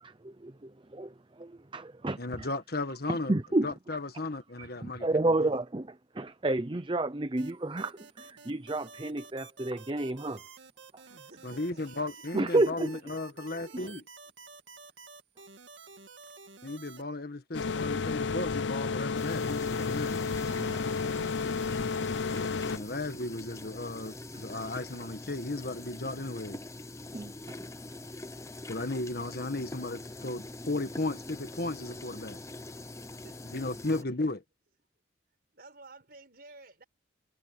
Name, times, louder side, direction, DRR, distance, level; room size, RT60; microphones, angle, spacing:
voice 1, 0.0-2.5 3.3-3.7 4.6-10.4 12.3-12.9 13.7-13.9 20.6-20.9 21.2-21.3 27.1-27.6, right 2 dB, 25° right, 0.7 m, -31 dB
voice 2, 2.2-3.3 3.6-5.3 11.4-14.0 16.6-20.2 22.7-26.6 28.7-32.4 33.5-34.4, left 2 dB, 55° left, 1.6 m, -35 dB
sound 1, 7.4-17.0, right 4 dB, 75° right, 2.2 m, -51 dB
voice 3, 11.1-12.2 12.9-13.0 13.3-14.0 33.2-33.7 34.0-34.1 35.5-36.8, right 2 dB, 55° right, 5.2 m, -54 dB
sound 2, 17.5-22.8, left 4 dB, 70° left, 0.6 m, -31 dB
sound 3, 19.2-34.0, left 2 dB, 15° left, 0.8 m, -44 dB
head